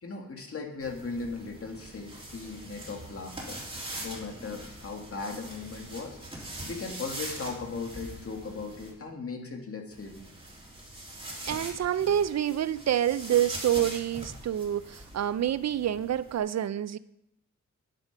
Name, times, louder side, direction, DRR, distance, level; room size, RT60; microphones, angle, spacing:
voice 1, 0.0-3.6 4.0-6.2 6.6-10.3 12.2-12.5, left 4 dB, 45° left, 3 dB, 1.9 m, -38 dB
sound 1, 0.8-8.9 9.9-16.4, right 1 dB, 15° right, 3.1 m, -42 dB
voice 2, 11.5-17.0, right 10 dB, 60° right, 16 dB, 0.4 m, -27 dB
10.0 x 9.0 x 5.7 m, 0.82 s
wide cardioid pair, 135°, 31 cm